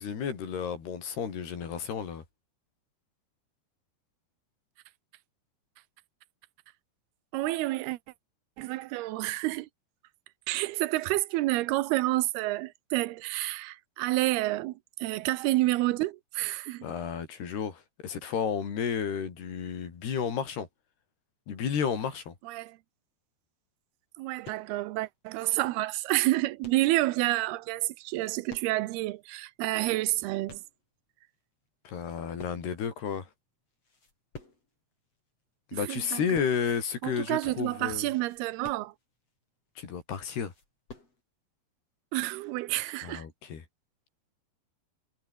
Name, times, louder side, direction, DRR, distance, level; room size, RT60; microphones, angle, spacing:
voice 1, 0.0-2.2 16.8-20.7 21.5-22.3 31.9-33.3 35.7-38.1 39.8-40.5 43.0-43.6, left 7 dB, 85° left, 6.0 m, -32 dB
voice 2, 7.3-8.0 8.6-9.7 10.5-14.7 15.0-16.9 22.4-22.8 24.2-30.6 35.7-36.4 37.0-38.9 42.1-43.3, right 18 dB, 85° right, 2.7 m, -29 dB
sound 1, 24.4-24.9 25.4-25.5 25.8-27.0 28.0-29.0 29.3-29.4 29.9-30.8 31.4-31.7 31.9-33.0 33.3-33.4 33.7-34.8 35.3-35.4 35.9-36.7 37.0-37.1 37.5-37.6 38.0-39.3 39.8-39.9 40.2-41.2, left 3 dB, 40° left, 8.6 m, -50 dB
omnidirectional pair, 4.5 m